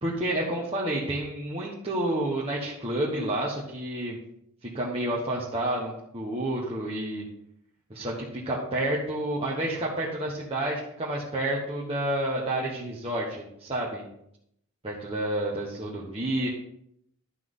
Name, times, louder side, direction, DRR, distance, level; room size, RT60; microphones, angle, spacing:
voice 1, 0.0-4.2 4.6-7.2 7.9-8.1 8.4-14.0 14.8-16.5, right 1 dB, 25° right, -5 dB, 1.4 m, -29 dB
11.5 x 5.9 x 3.9 m, 0.73 s
head